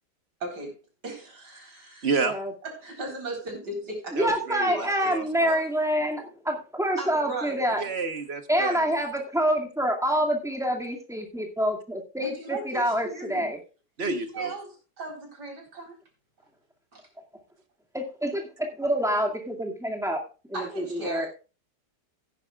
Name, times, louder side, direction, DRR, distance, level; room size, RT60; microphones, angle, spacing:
voice 1, 0.4-0.7 1.0-2.1 2.8-4.4 4.7-5.6 7.0-7.6 12.2-13.5 14.0-14.7 15.0-15.9 16.9-17.0 20.5-21.3, right 1 dB, 75° right, 1 dB, 4.5 m, -36 dB
voice 2, 2.0-2.4 4.1-5.5 7.8-8.9 14.0-14.5, right 4 dB, 40° right, 8 dB, 1.3 m, -30 dB
voice 3, 4.1-7.8 8.5-13.6 17.9-20.2 20.5-21.3, equal, ahead, 0 dB, 2.1 m, -27 dB
16.5 x 9.6 x 2.4 m, 0.33 s
omnidirectional pair, 1.8 m